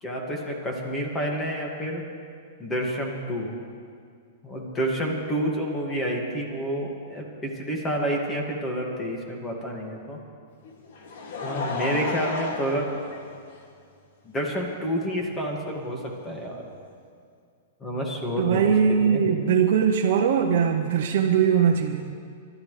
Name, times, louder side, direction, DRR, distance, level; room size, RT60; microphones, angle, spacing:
voice 1, 0.0-2.0 2.6-3.5 4.4-10.2 11.4-12.9 14.2-16.7 17.8-19.2, equal, 15° left, 0 dB, 2.1 m, -29 dB
Laughter, 10.6-13.9 14.7-14.8 16.2-16.3, left 3 dB, 65° left, 2.3 m, -33 dB
voice 2, 18.4-22.2, right 7 dB, 65° right, 1 dB, 0.9 m, -21 dB
26.0 x 12.5 x 3.3 m, 2.2 s
hypercardioid pair, 150°, 0 cm